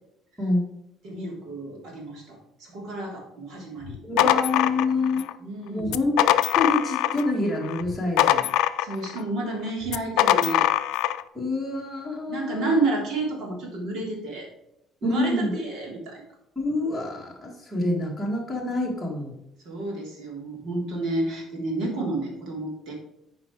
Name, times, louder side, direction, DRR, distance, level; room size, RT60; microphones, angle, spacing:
voice 1, 1.0-4.3 5.4-6.0 8.8-10.7 12.3-14.5 15.0-16.2 19.6-22.9, right 2 dB, 65° right, -1 dB, 3.1 m, -30 dB
sound 1, 3.8-5.3 5.8-7.3 7.6-9.2 9.9-11.2, left 13 dB, 90° left, 0.4 m, -22 dB
voice 2, 4.0-5.3 5.7-6.2 6.6-8.5 11.3-12.8 15.0-15.5 16.6-19.3, left 2 dB, 5° left, -5 dB, 1.9 m, -27 dB
9.6 x 4.8 x 4.6 m, 0.82 s
cardioid pair, 145°, 0 cm